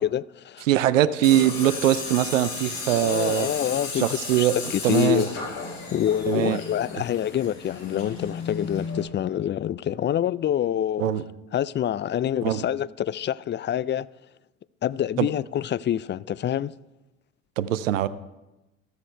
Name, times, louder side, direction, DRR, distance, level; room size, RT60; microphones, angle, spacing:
voice 1, 0.0-0.7 2.9-5.6 5.9-11.1 11.5-14.1 14.8-16.7, left 10 dB, 30° left, 0.4 m, -26 dB
voice 2, 0.7-3.5 3.9-4.5 4.8-5.2 6.3-6.6 11.0-11.2 12.4-12.6 15.2-15.3 17.6-18.1, right 12 dB, 85° right, 0.6 m, -22 dB
Tools, 1.2-9.0, left 4 dB, 60° left, 6.4 m, -34 dB
14.0 x 13.5 x 4.5 m
hypercardioid pair, 60°, 38 cm